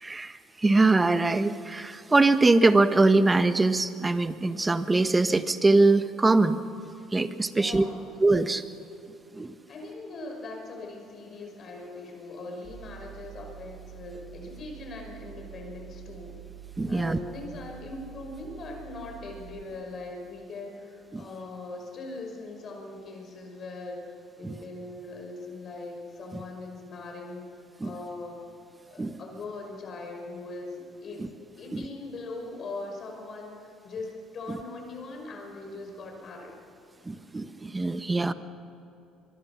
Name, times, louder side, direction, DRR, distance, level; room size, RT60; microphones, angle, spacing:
voice 1, 0.0-6.6 7.1-7.8 8.2-8.6 9.3-9.5 16.8-17.2 21.1-21.2 24.4-24.5 27.8-27.9 29.0-29.2 31.2-31.3 31.7-31.9 37.0-38.3, right 3 dB, 20° right, 11 dB, 1.3 m, -23 dB
voice 2, 7.5-8.0 9.7-16.4 16.9-27.4 27.8-28.5 28.9-31.3 31.6-36.5, left 2 dB, 45° left, 2 dB, 5.8 m, -40 dB
Mechanical fan, 12.6-19.6, right 12 dB, 60° right, 3.7 m, -46 dB
25.0 x 22.5 x 5.9 m, 2.8 s
hypercardioid pair, 65°, 0 cm